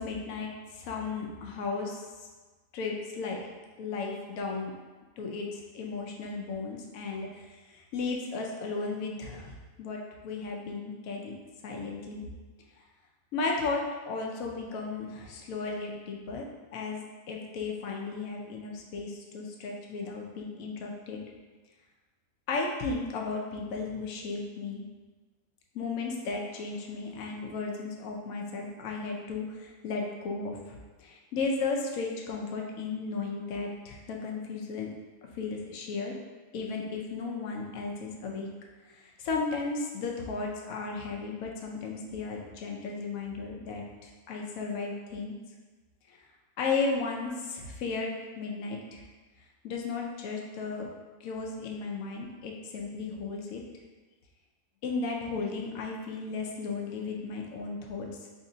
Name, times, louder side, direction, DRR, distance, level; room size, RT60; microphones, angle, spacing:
voice 1, 0.0-2.0 2.7-3.4 3.8-4.7 5.2-7.5 7.7-11.3 11.6-12.2 13.3-21.2 22.5-24.8 25.7-34.9 35.4-36.1 36.5-38.5 38.9-45.4 46.6-49.0 49.6-50.9 51.2-53.6 54.8-58.3, left 4 dB, 80° left, 0 dB, 1.0 m, -35 dB
3.3 x 2.7 x 3.8 m, 1.3 s
omnidirectional pair, 1.4 m